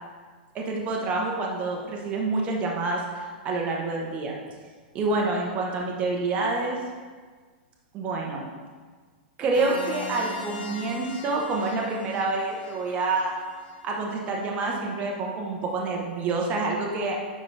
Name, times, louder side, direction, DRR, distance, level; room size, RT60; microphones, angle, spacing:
voice 1, 0.5-4.3 4.9-6.8 7.9-8.4 9.4-13.3 13.8-17.2, right 3 dB, 25° right, -1 dB, 0.9 m, -27 dB
sound 1, 9.5-14.2, left 4 dB, 75° left, 1.2 m, -40 dB
10.0 x 4.0 x 3.3 m, 1.5 s
hypercardioid pair, 140°, 5 cm